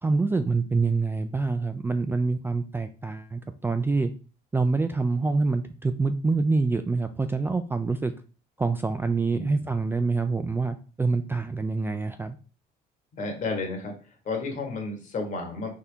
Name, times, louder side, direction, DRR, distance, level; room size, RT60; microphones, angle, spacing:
voice 1, 0.0-4.1 4.5-8.1 8.6-12.4, right 3 dB, 15° right, 8 dB, 0.3 m, -26 dB
voice 2, 9.3-9.7 13.2-13.9 14.2-15.7, left 3 dB, 50° left, 3 dB, 1.6 m, -32 dB
4.2 x 3.6 x 3.5 m, 0.36 s
cardioid pair, 110°, 17 cm